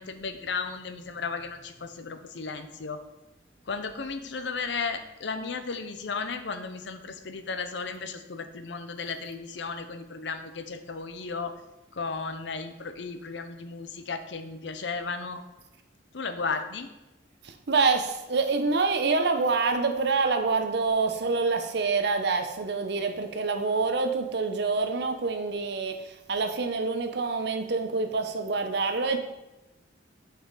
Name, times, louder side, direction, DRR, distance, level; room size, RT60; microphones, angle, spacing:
voice 1, 0.0-3.0 3.7-11.6 11.9-15.4 16.1-16.9, left 4 dB, 65° left, 9 dB, 0.7 m, -34 dB
voice 2, 17.7-26.0 26.3-29.2, right 4 dB, 60° right, 7 dB, 0.8 m, -26 dB
7.4 x 6.3 x 4.0 m, 0.98 s
head